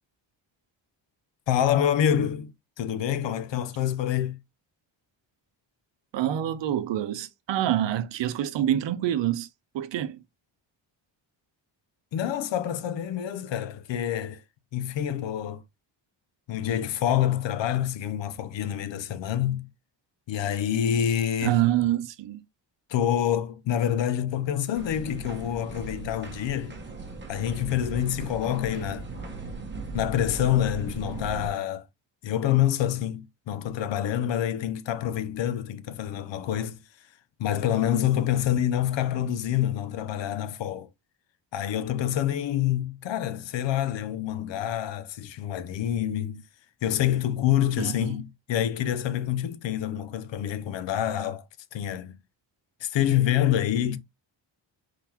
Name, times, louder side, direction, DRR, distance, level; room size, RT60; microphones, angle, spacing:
voice 1, 1.5-4.4 12.1-14.4 14.7-15.6 16.5-19.7 20.3-21.6 22.9-26.8 27.3-29.1 29.9-31.8 32.2-36.8 37.4-40.9 41.5-46.4 46.8-51.5 51.7-52.2 52.8-54.0, left 10 dB, 75° left, 0.7 m, -27 dB
voice 2, 6.1-9.5 9.7-10.2 21.4-22.4 47.8-48.2, right 12 dB, 70° right, 0.7 m, -26 dB
sound 1, 24.7-31.5, right 3 dB, 25° right, 1.2 m, -38 dB
4.6 x 3.8 x 2.9 m
cardioid pair, 120°, 45 cm